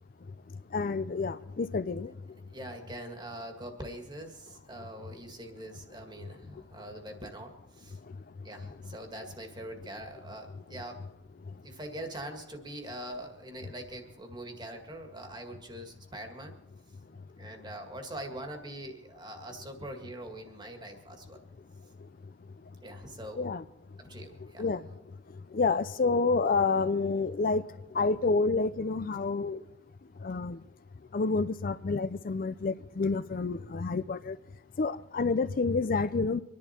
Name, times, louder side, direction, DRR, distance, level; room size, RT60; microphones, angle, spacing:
voice 1, 0.7-2.1 23.4-23.6 24.6-24.8 25.5-27.6 27.9-29.6 30.2-30.6 31.1-34.4 34.8-36.4, left 4 dB, 50° left, 0.5 m, -28 dB
voice 2, 2.5-8.0 8.4-11.0 11.6-16.5 17.4-21.4 22.8-23.5 24.0-24.8, right 1 dB, 25° right, 1.8 m, -43 dB
25.0 x 11.0 x 4.3 m
head